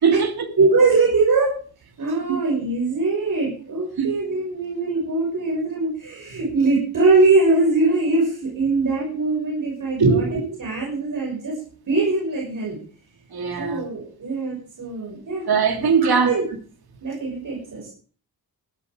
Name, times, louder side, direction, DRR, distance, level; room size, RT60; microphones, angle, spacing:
voice 1, 0.0-0.3 4.0-4.1 10.0-10.6 13.3-13.8 15.5-16.4, right 5 dB, 80° right, 3.0 m, -20 dB
voice 2, 0.6-1.5 2.0-10.3 10.6-11.6 11.9-12.8 13.6-15.4 15.7-16.4 17.0-17.9, right 3 dB, 60° right, 6.1 m, -22 dB
14.5 x 12.0 x 5.1 m
wide cardioid pair, 160°, 37 cm